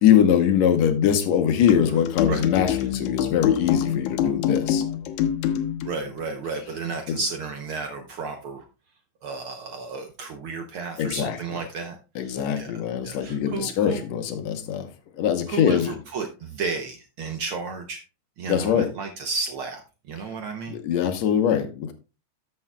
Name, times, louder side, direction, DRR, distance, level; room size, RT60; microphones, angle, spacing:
voice 1, 0.0-4.8 7.1-7.2 11.0-11.4 12.2-14.9 15.2-15.9 18.5-18.9 20.7-21.9, left 9 dB, 70° left, 7 dB, 2.1 m, -22 dB
sound 1, 1.7-6.0, left 9 dB, 90° left, 2.2 m, -26 dB
voice 2, 5.8-8.6 9.2-12.7 13.0-14.0 15.5-18.0 18.4-19.8 20.1-20.7, right 4 dB, 75° right, 5 dB, 1.2 m, -32 dB
13.0 x 6.7 x 2.2 m, 0.31 s
omnidirectional pair, 3.3 m